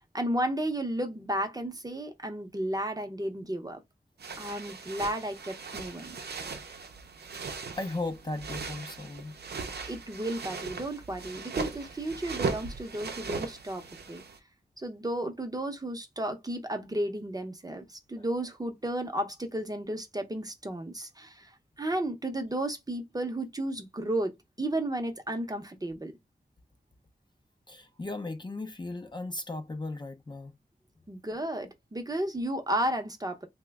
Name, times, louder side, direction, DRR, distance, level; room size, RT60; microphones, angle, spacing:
voice 1, 0.1-3.8 4.4-6.2 9.9-13.8 14.1-14.2 14.8-24.3 24.6-26.1 31.1-33.5, right 1 dB, 20° right, 0.6 m, -33 dB
sound 1, 4.2-14.4, right 4 dB, 75° right, 0.6 m, -38 dB
voice 2, 7.8-9.4 18.2-18.5 27.7-30.5, left 2 dB, 25° left, 0.4 m, -37 dB
3.0 x 2.1 x 3.4 m
wide cardioid pair, 105°, 17 cm